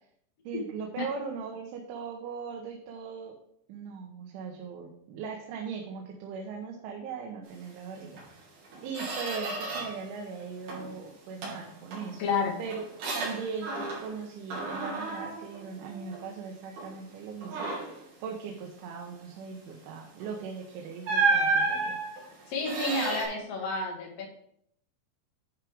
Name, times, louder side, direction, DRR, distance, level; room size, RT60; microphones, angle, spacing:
voice 1, 0.5-3.3 3.7-8.4 8.8-12.2 12.6-12.8 13.1-22.0, right 5 dB, 90° right, 1 dB, 3.5 m, -39 dB
Squeak, 8.1-8.3 8.6-10.1 10.4-11.0 11.4-14.2 14.5-16.3 16.8-17.0 17.4-18.0 20.1-20.3 21.0-23.2, right 3 dB, 60° right, 4.6 m, -32 dB
voice 2, 12.2-12.6 22.5-24.3, left 3 dB, 80° left, -1 dB, 1.4 m, -30 dB
11.0 x 5.0 x 4.8 m, 0.71 s
omnidirectional pair, 5.3 m